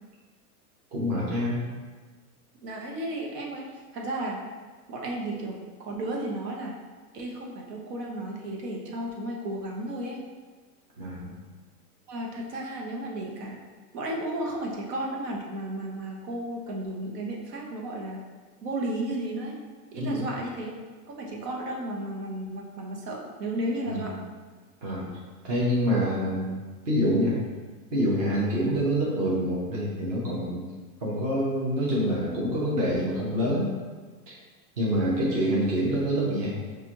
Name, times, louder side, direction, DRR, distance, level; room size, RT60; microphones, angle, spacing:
voice 1, 0.9-1.6 11.0-11.4 20.0-20.1 23.9-24.1 24.8-25.1 25.4-26.5 26.9-27.4 27.9-30.7 31.0-33.7 34.8-36.5, equal, 25° right, -6 dB, 0.5 m, -26 dB
voice 2, 2.6-4.4 4.9-6.7 7.1-10.2 12.1-13.6 13.9-18.2 18.6-19.6 19.9-20.7 21.1-24.1 28.3-28.5, right 1 dB, 80° right, -1 dB, 1.0 m, -33 dB
4.7 x 2.5 x 2.9 m, 1.4 s
supercardioid pair, 170°, 48 cm